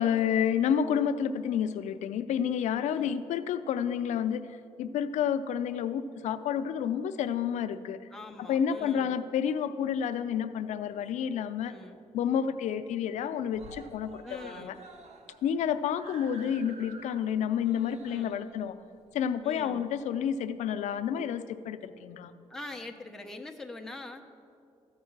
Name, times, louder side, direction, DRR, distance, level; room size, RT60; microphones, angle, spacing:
voice 1, 0.0-4.5 4.8-8.0 8.4-11.7 12.1-14.8 15.4-18.8 19.1-22.3, left 8 dB, 85° left, 11 dB, 0.4 m, -30 dB
voice 2, 8.1-9.2 11.6-12.0 14.2-14.8 18.1-18.4 19.4-19.9 22.5-24.2, left 2 dB, 5° left, 2 dB, 0.6 m, -44 dB
Screaming, 10.6-11.5 11.9-12.0 12.3-12.4 12.7-13.2 13.5-20.3 21.2-21.3, right 3 dB, 75° right, 0.9 m, -52 dB
13.5 x 4.8 x 7.3 m, 2.5 s
cardioid pair, 125°, 12 cm